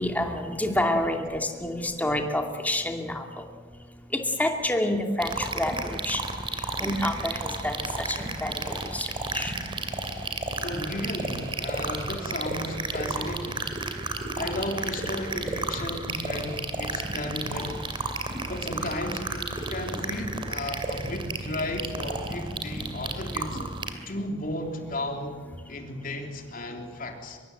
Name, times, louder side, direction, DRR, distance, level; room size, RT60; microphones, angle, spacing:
voice 1, 0.0-3.2 4.1-6.2 6.5-9.1 9.3-9.5, left 1 dB, 10° left, 3 dB, 2.4 m, -28 dB
sound 1, 5.2-23.9, right 2 dB, 30° right, 2.7 m, -32 dB
voice 2, 10.6-13.8 14.3-17.8 18.5-23.6 24.1-25.3 25.7-27.4, left 1 dB, 50° left, 3 dB, 3.3 m, -34 dB
23.5 x 22.5 x 7.9 m, 1.5 s
head